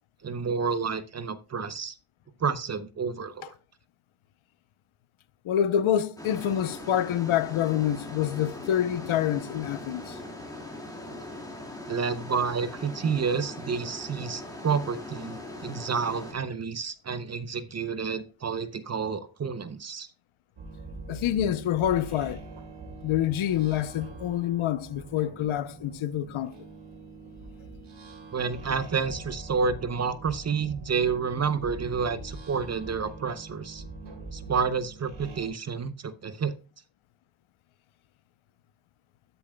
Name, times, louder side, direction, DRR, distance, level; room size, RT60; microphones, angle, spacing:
voice 1, 0.2-1.9 2.4-3.5 11.8-15.4 15.6-20.1 28.3-33.8 34.3-36.5, right 5 dB, 35° right, 0.6 m, -29 dB
voice 2, 5.4-10.2 21.1-22.4 23.0-26.5, left 10 dB, 75° left, 0.8 m, -27 dB
sound 1, 6.2-16.3, left 1 dB, 5° left, 2.0 m, -40 dB
sound 2, 20.6-35.5, right 2 dB, 75° right, 3.3 m, -43 dB
13.0 x 7.0 x 2.2 m
wide cardioid pair, 135°, 50 cm